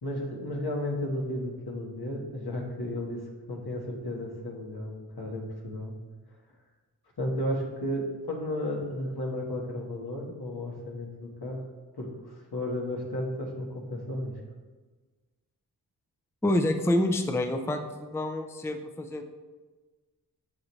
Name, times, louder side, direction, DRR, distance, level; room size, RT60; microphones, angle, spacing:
voice 1, 0.0-6.0 7.2-11.6 12.0-14.3, left 1 dB, 75° left, -1 dB, 1.6 m, -33 dB
voice 2, 16.4-19.3, left 1 dB, 5° left, 5 dB, 0.5 m, -27 dB
7.8 x 7.0 x 3.2 m, 1.3 s
wide cardioid pair, 100°, 38 cm